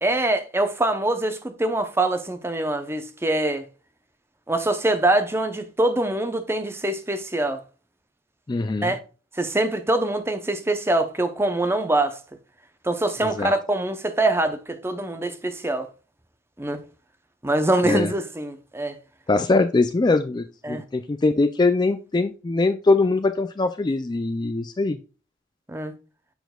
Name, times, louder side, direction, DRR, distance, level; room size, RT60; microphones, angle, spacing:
voice 1, 0.0-3.7 4.5-7.6 8.8-9.0 9.4-12.2 12.8-15.9 16.6-16.8 17.4-18.9 20.6-20.8 25.7-25.9, right 2 dB, 15° right, 0.7 m, -24 dB
voice 2, 8.5-8.9 13.2-13.5 17.8-18.1 19.3-25.0, left 3 dB, 20° left, 0.3 m, -22 dB
7.0 x 6.0 x 2.3 m
head